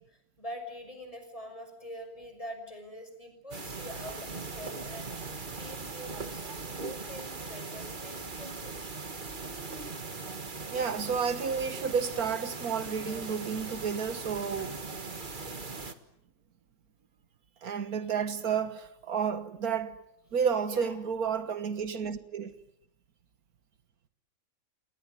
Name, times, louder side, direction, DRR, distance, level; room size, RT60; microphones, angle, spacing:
voice 1, 0.0-5.1 5.6-8.8 20.6-21.0, equal, 20° left, 6.1 m, -44 dB
sound 1, 3.5-15.9, right 4 dB, 35° right, 1.7 m, -40 dB
voice 2, 10.7-14.8 17.6-20.0 20.3-22.6, right 6 dB, 75° right, 1.8 m, -31 dB
29.5 x 19.5 x 9.8 m
omnidirectional pair, 1.6 m